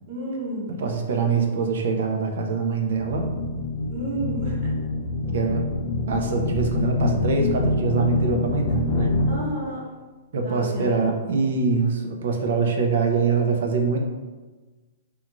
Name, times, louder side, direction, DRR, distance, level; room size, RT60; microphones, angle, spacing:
voice 1, 0.1-0.7 3.9-4.7 9.3-9.8 10.4-11.3, right 2 dB, 40° right, -4 dB, 0.8 m, -31 dB
voice 2, 0.7-3.3 5.3-5.6 6.1-9.1 10.3-14.0, right 4 dB, 65° right, 3 dB, 0.4 m, -24 dB
sound 1, 3.0-9.4, left 2 dB, 30° left, 0.4 m, -25 dB
2.5 x 2.3 x 2.9 m, 1.3 s
hypercardioid pair, 170°, 0 cm